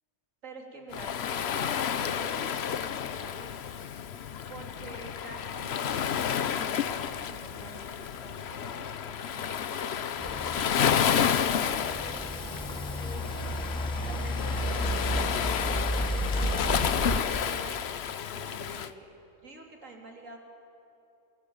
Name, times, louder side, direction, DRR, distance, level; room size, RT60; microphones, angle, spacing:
voice 1, 0.4-3.6 4.5-10.5 11.2-13.4 14.0-15.8 16.5-17.8 18.3-19.1 19.4-20.4, right 3 dB, 80° right, 1 dB, 3.6 m, -47 dB
Waves surf, 0.9-18.9, left 8 dB, 60° left, 1.0 m, -31 dB
sound 1, 10.2-17.2, equal, 5° left, 1.3 m, -32 dB
27.5 x 19.5 x 8.9 m, 2.9 s
omnidirectional pair, 1.3 m